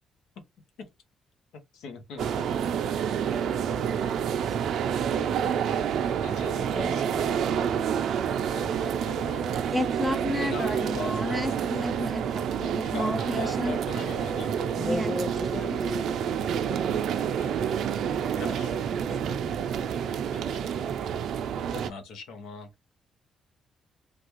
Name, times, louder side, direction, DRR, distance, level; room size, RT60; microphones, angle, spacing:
voice 1, 1.5-2.5 6.2-7.3 8.5-9.4 10.4-12.1 12.9-14.8 17.3-18.0 18.4-18.7 19.9-20.7 21.7-22.9, left 4 dB, 85° left, 0.9 m, -41 dB
sound 1, 2.2-21.9, right 8 dB, 75° right, 0.4 m, -28 dB
voice 2, 6.7-8.1 14.8-17.7 18.9-20.1, left 1 dB, 15° left, 1.2 m, -38 dB
voice 3, 9.7-13.8 14.8-15.1, equal, 10° right, 0.5 m, -31 dB
3.3 x 2.3 x 3.0 m
cardioid pair, 90°, 0 cm